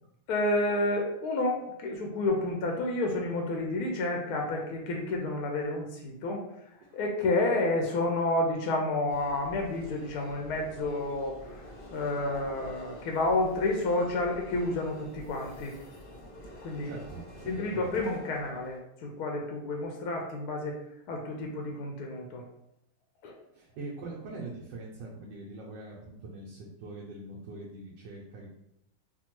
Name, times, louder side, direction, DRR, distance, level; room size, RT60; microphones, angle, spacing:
voice 1, 0.3-6.4 6.9-11.6 11.9-15.7 16.6-16.9 17.5-20.8 21.1-22.4 23.2-23.3, left 2 dB, 70° left, 1 dB, 0.9 m, -30 dB
sound 1, 9.1-18.8, equal, 55° left, 0.6 m, -47 dB
voice 2, 16.8-18.0 23.5-28.5, right 2 dB, 75° right, -4 dB, 1.2 m, -43 dB
3.5 x 2.1 x 2.9 m, 0.79 s
omnidirectional pair, 2.1 m